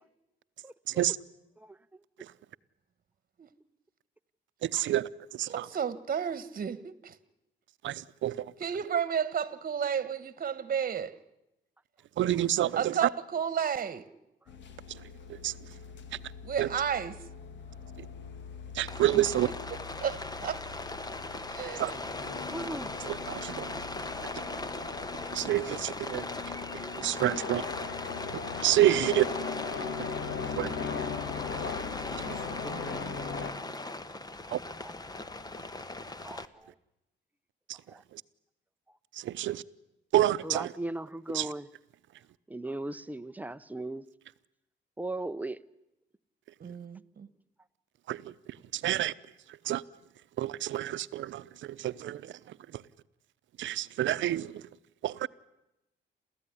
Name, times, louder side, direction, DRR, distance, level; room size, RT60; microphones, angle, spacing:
voice 1, 0.6-1.0 1.6-2.3 22.5-23.0 31.6-31.9 32.6-33.1 34.1-34.2 34.8-34.9 36.2-36.8 37.9-38.0 38.9-39.0 40.4-41.7 42.5-44.0 45.0-45.6, right 1 dB, 10° right, 0.8 m, -39 dB
voice 2, 4.6-5.6 7.8-8.5 12.2-13.1 14.9-15.0 15.3-15.5 16.6-16.7 18.0-18.1 18.7-19.5 21.8-21.9 23.0-23.7 24.2-24.3 25.3-26.3 26.7-27.6 28.6-29.3 30.0-30.1 30.6-30.7 32.2-32.4 34.5-34.6 37.7-37.8 38.1-38.2 39.1-39.6 40.1-40.7 41.3-41.5 48.1-48.3 48.7-49.1 49.5-49.8 50.4-52.8 53.6-54.6 55.0-55.3, right 13 dB, 75° right, 0.8 m, -29 dB
voice 3, 5.5-7.2 8.6-11.2 12.8-14.1 16.4-17.3 19.1-19.2 19.7-20.6 21.5-22.0 32.1-33.5 46.6-47.3, right 7 dB, 45° right, 1.5 m, -33 dB
sound 1, 14.5-33.5, left 6 dB, 65° left, 2.0 m, -40 dB
Rain, 18.9-36.5, left 2 dB, 20° left, 1.3 m, -39 dB
29.0 x 14.5 x 9.9 m
cardioid pair, 90°, 20 cm